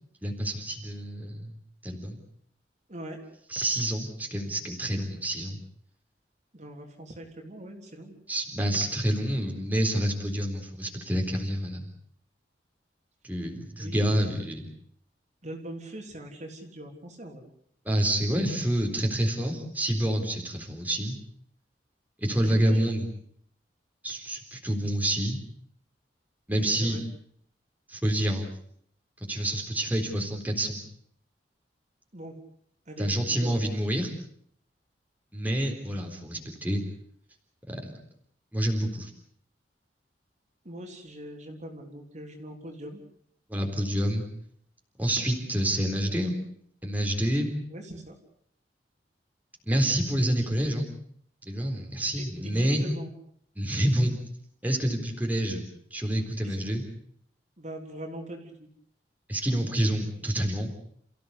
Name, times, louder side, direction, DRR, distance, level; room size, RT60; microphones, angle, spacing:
voice 1, 0.2-1.5 1.8-2.2 3.5-5.6 8.3-11.9 13.2-14.7 17.9-21.2 22.2-23.0 24.0-25.4 26.5-27.0 27.9-28.5 29.3-30.8 33.0-34.1 35.3-36.8 37.7-37.9 38.5-39.1 43.5-44.2 45.0-46.4 46.8-47.5 49.6-50.9 51.5-52.8 53.6-54.1 54.6-55.6 55.9-56.8 59.3-60.7, right 1 dB, 10° right, 1 dB, 3.9 m, -28 dB
voice 2, 2.9-3.2 6.5-8.2 13.8-14.3 15.4-17.4 22.4-23.0 26.5-27.0 32.1-32.4 32.9-33.7 40.6-43.0 47.7-48.2 50.2-50.5 52.2-53.1 56.4-56.9 57.6-58.7, right 1 dB, 40° right, 2 dB, 3.7 m, -42 dB
29.0 x 15.5 x 8.3 m, 0.65 s
head